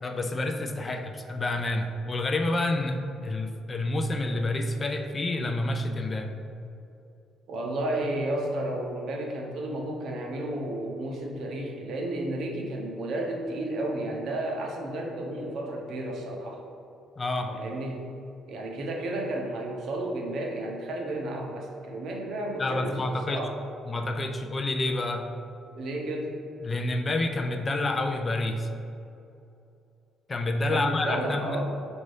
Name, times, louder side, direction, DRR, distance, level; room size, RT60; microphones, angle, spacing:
voice 1, 0.0-6.3 17.2-17.6 22.6-23.5 23.9-25.3 26.6-28.7 30.3-31.6, left 2 dB, 30° left, 4 dB, 0.3 m, -28 dB
voice 2, 7.5-16.6 17.5-18.0 18.5-23.6 25.7-26.3 30.7-31.6, right 1 dB, 65° right, 0 dB, 0.7 m, -32 dB
5.2 x 2.6 x 3.2 m, 2.7 s
cardioid pair, 100°, 0 cm